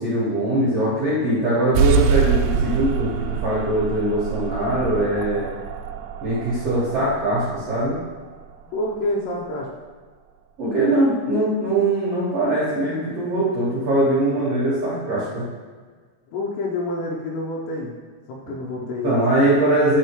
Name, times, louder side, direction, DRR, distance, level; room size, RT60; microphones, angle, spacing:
voice 1, 0.0-5.5 6.2-8.0 10.6-15.4 19.0-20.0, right 1 dB, 65° right, -9 dB, 1.6 m, -21 dB
sound 1, 1.7-8.9, right 6 dB, 90° right, 2.2 m, -25 dB
voice 2, 8.7-9.7 16.3-17.9 18.3-19.4, left 2 dB, 90° left, -2 dB, 2.9 m, -28 dB
8.0 x 4.3 x 3.0 m, 1.5 s
omnidirectional pair, 4.9 m